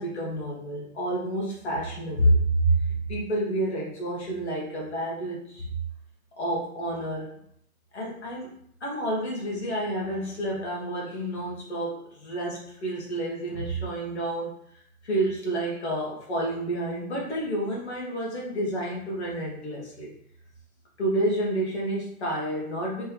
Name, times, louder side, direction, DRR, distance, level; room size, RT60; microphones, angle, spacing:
voice 1, 0.0-5.7 6.4-7.3 7.9-8.5 8.8-20.1 21.0-23.1, right 1 dB, 45° left, -3 dB, 1.6 m, -29 dB
4.2 x 3.4 x 3.2 m, 0.68 s
hypercardioid pair, 180°, 45 cm